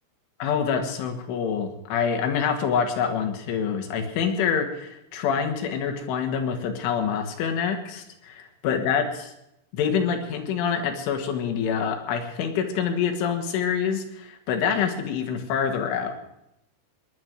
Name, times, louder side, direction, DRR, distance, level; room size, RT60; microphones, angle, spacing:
voice 1, 0.4-9.3 9.7-16.2, left 7 dB, 75° left, 5 dB, 4.2 m, -26 dB
19.5 x 11.0 x 6.3 m, 0.83 s
omnidirectional pair, 5.8 m